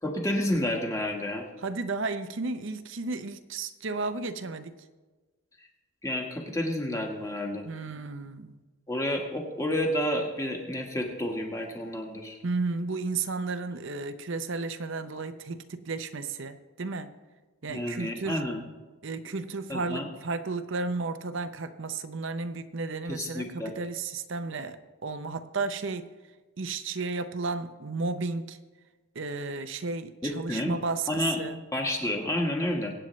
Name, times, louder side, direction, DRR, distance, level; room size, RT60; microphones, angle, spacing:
voice 1, 0.0-1.4 6.0-7.6 8.9-12.4 17.7-18.6 19.7-20.1 23.1-23.7 30.2-30.8 31.1-31.4 31.7-32.9, left 1 dB, 15° left, 1 dB, 1.5 m, -30 dB
voice 2, 1.6-4.7 7.6-8.6 12.4-17.1 17.6-18.4 19.0-26.1 26.6-28.6 29.1-31.6, right 3 dB, 55° right, 10 dB, 0.7 m, -33 dB
23.0 x 8.9 x 3.2 m, 1.3 s
head